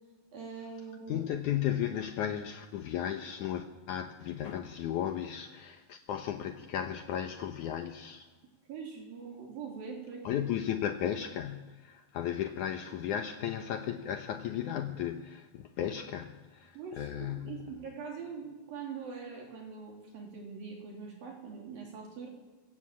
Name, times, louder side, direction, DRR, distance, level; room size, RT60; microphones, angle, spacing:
voice 1, 0.3-1.2 8.7-10.4 16.7-22.3, right 5 dB, 60° right, 4.5 m, -43 dB
voice 2, 1.1-8.3 10.2-17.7, left 10 dB, 80° left, 1.7 m, -35 dB
27.0 x 17.0 x 7.4 m
omnidirectional pair, 4.9 m